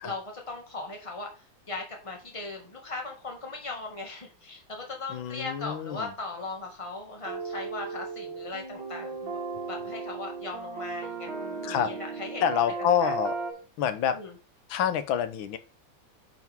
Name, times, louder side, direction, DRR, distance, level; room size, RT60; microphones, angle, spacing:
voice 1, 0.0-9.4 9.7-12.4 12.8-13.1 14.1-14.3, left 3 dB, 15° left, 1 dB, 1.7 m, -38 dB
voice 2, 5.1-6.1 11.6-11.9 12.4-13.4 13.8-14.2 14.7-15.6, left 9 dB, 80° left, 11 dB, 1.6 m, -27 dB
sound 1, 7.2-13.5, right 4 dB, 65° right, 2.6 m, -36 dB
9.3 x 4.9 x 3.5 m, 0.35 s
omnidirectional pair, 2.1 m